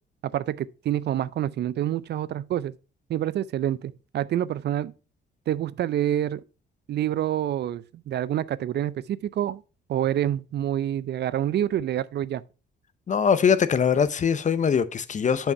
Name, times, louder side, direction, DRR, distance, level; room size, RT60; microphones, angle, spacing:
voice 1, 0.2-2.7 3.1-4.9 5.5-6.4 6.9-9.6 9.9-12.4, right 11 dB, 60° right, 0.5 m, -27 dB
voice 2, 13.1-15.5, left 7 dB, 40° left, 0.7 m, -22 dB
7.2 x 5.5 x 4.4 m
cardioid pair, 90°, 20 cm